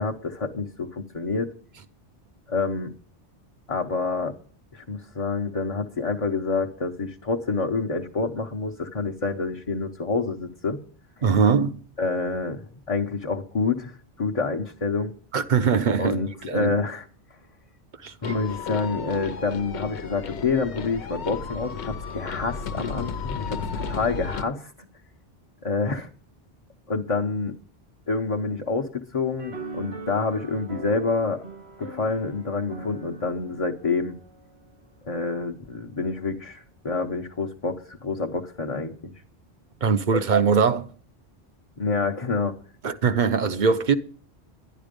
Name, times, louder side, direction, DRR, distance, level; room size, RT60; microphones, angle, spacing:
voice 1, 0.0-1.5 2.5-2.9 3.7-4.4 4.7-10.8 12.0-13.9 14.2-15.1 16.0-17.1 18.2-24.7 25.6-26.1 26.9-27.5 28.1-31.4 31.8-34.1 35.0-39.1 41.8-42.6, left 4 dB, 35° left, 0.9 m, -27 dB
voice 2, 11.2-11.8 15.3-16.2 16.5-16.7 18.0-18.3 39.8-40.9 42.8-43.9, right 5 dB, 50° right, 0.9 m, -21 dB
sound 1, 18.2-24.5, left 5 dB, 80° left, 1.1 m, -33 dB
sound 2, 29.4-34.9, right 2 dB, 70° right, 1.6 m, -41 dB
12.0 x 11.0 x 5.2 m
omnidirectional pair, 1.1 m